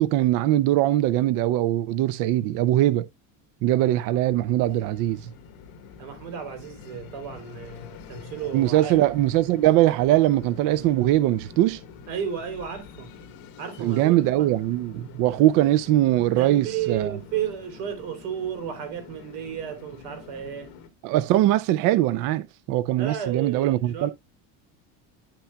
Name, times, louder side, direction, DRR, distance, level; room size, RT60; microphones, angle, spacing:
voice 1, 0.0-3.1 3.6-5.3 8.5-11.8 13.8-17.2 21.0-24.1, right 14 dB, 50° right, 0.4 m, -21 dB
sound 1, 4.0-20.9, left 6 dB, 55° left, 1.6 m, -45 dB
voice 2, 6.0-8.9 12.1-13.1 13.6-14.5 16.4-20.7 23.0-24.1, right 8 dB, 90° right, 3.6 m, -33 dB
10.0 x 5.8 x 2.2 m
cardioid pair, 160°, 42 cm